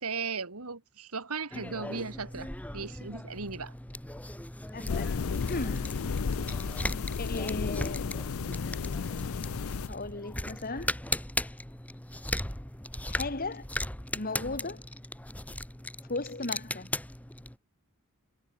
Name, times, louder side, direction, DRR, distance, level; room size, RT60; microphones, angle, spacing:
voice 1, 0.0-3.7, right 4 dB, 80° right, 2.4 m, -37 dB
sound 1, 1.5-17.6, left 1 dB, 5° left, 1.5 m, -38 dB
voice 2, 4.7-5.2 5.5-6.0 6.5-6.6 7.2-8.2 9.9-10.9 13.1-13.7 14.1-14.8 16.1-16.9, left 2 dB, 40° left, 2.2 m, -36 dB
sound 2, 4.9-9.9, left 5 dB, 65° left, 0.5 m, -33 dB
head